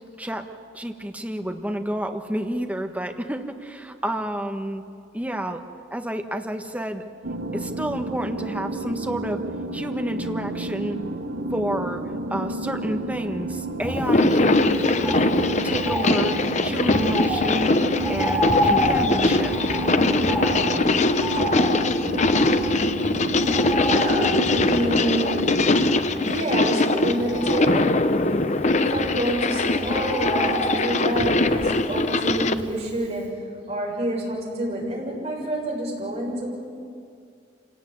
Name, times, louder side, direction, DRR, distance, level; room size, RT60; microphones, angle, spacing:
voice 1, 0.2-0.5 0.7-4.8 5.1-5.6 5.9-7.0 7.5-9.4 9.7-11.0 11.5-12.0 12.3-15.3 15.6-16.4 16.6-17.8 18.1-19.5, right 1 dB, 10° right, 5 dB, 1.4 m, -29 dB
sound 1, 7.2-26.0, right 2 dB, 80° right, 1.2 m, -31 dB
Bird, 13.8-32.9 33.2-33.3, equal, 10° left, 6.3 m, -30 dB
sound 2, 14.0-32.6, left 2 dB, 40° left, 0.8 m, -22 dB
voice 2, 23.8-25.6 26.2-28.0 28.7-36.5, right 1 dB, 35° right, -3 dB, 7.1 m, -28 dB
27.0 x 17.5 x 9.6 m, 2.4 s
head